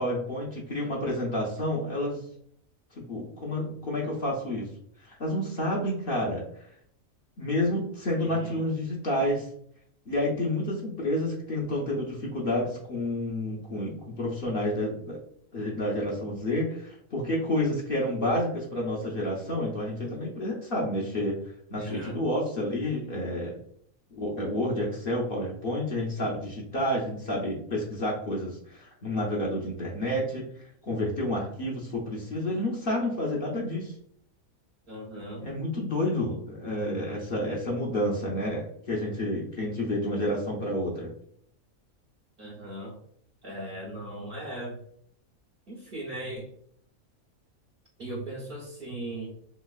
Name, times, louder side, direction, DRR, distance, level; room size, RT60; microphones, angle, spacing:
voice 1, 0.0-2.3 3.0-4.7 5.0-6.4 7.4-9.5 10.1-15.2 15.5-21.4 21.7-23.6 24.2-30.4 30.8-33.9 35.4-41.1, left 1 dB, 50° left, -3 dB, 0.8 m, -29 dB
voice 2, 8.2-8.7 21.8-22.2 34.9-35.5 42.4-43.0 43.4-44.8 45.7-46.5 48.0-49.3, right 1 dB, 55° right, -3 dB, 0.7 m, -38 dB
3.3 x 3.0 x 2.3 m, 0.65 s
omnidirectional pair, 1.5 m